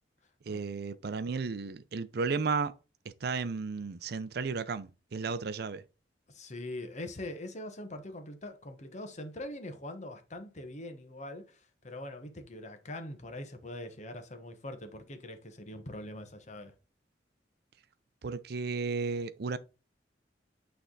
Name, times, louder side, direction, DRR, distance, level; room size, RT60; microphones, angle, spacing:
voice 1, 0.5-2.7 3.2-5.8 18.2-19.6, right 4 dB, 60° right, 0.5 m, -33 dB
voice 2, 6.3-16.7, left 1 dB, 40° left, 1.1 m, -43 dB
8.6 x 3.4 x 3.9 m
head